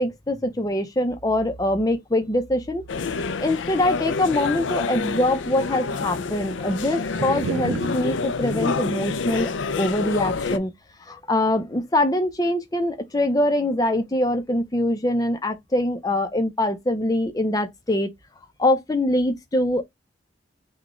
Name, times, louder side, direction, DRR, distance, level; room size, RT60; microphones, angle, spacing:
voice 1, 0.0-2.8 3.4-9.5 9.8-10.7 11.1-18.1 18.6-19.8, left 1 dB, 20° left, 0.6 m, -23 dB
sound 1, 2.9-10.6, left 4 dB, 75° left, 0.5 m, -28 dB
sound 2, 4.2-5.2 5.5-5.6 5.9-8.0, right 5 dB, 90° right, 0.4 m, -32 dB
6.0 x 2.3 x 3.0 m
head